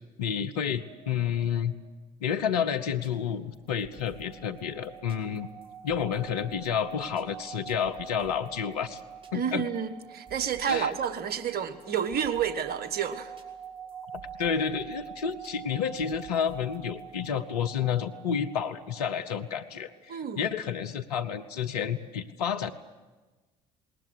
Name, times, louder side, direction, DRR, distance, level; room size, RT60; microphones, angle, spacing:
voice 1, 0.2-1.7 2.2-5.5 5.8-9.0 9.3-9.7 10.7-10.9 14.4-22.7, left 7 dB, 85° left, 7 dB, 0.9 m, -30 dB
sound 1, 0.8-1.9 3.9-20.0, right 7 dB, 80° right, 0.9 m, -46 dB
sound 2, 2.9-17.3, right 7 dB, 25° right, 4.5 m, -56 dB
voice 2, 9.3-13.3 20.1-20.5, right 8 dB, 50° right, 12 dB, 1.4 m, -30 dB
19.5 x 19.5 x 9.7 m, 1.2 s
hypercardioid pair, 55°, 20 cm